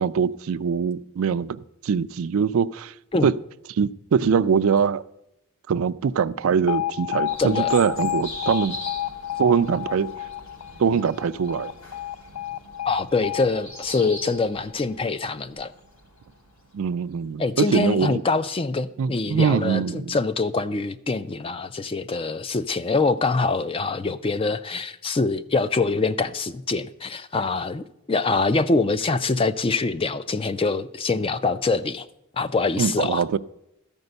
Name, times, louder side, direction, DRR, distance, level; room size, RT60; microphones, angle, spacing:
voice 1, 0.0-2.9 3.2-3.3 3.7-5.0 5.7-8.8 9.4-10.1 10.8-11.7 16.7-18.2 19.0-20.2 32.8-33.4, right 6 dB, 70° right, 0.4 m, -23 dB
Alarm, 6.7-14.7, left 13 dB, 85° left, 0.6 m, -31 dB
sound 1, 7.3-17.5, left 1 dB, 70° left, 3.5 m, -42 dB
voice 2, 7.4-7.7 12.9-15.7 17.4-32.1 32.3-33.2, left 3 dB, 25° left, 0.3 m, -24 dB
13.5 x 5.3 x 7.9 m
head